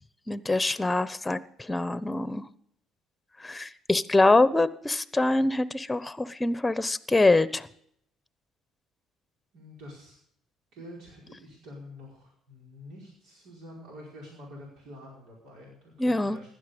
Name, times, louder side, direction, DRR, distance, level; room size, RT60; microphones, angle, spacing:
voice 1, 0.3-2.5 3.4-7.7 16.0-16.4, left 2 dB, 15° left, 15 dB, 1.0 m, -24 dB
voice 2, 9.5-10.2 10.7-16.5, left 1 dB, 75° right, -3 dB, 5.1 m, -47 dB
16.0 x 12.0 x 5.3 m, 0.69 s
supercardioid pair, 70°, 0 cm